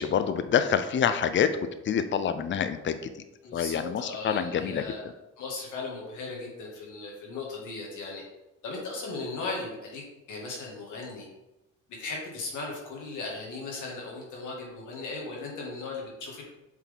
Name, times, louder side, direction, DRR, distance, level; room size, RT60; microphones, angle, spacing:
voice 1, 0.0-3.2 3.5-5.1, left 8 dB, 40° left, 11 dB, 0.5 m, -27 dB
voice 2, 3.4-5.0 5.4-8.2 8.6-10.0 10.3-11.3 12.0-16.4, left 3 dB, 80° left, -2 dB, 2.0 m, -37 dB
7.3 x 3.8 x 3.5 m, 0.97 s
cardioid pair, 90°, 30 cm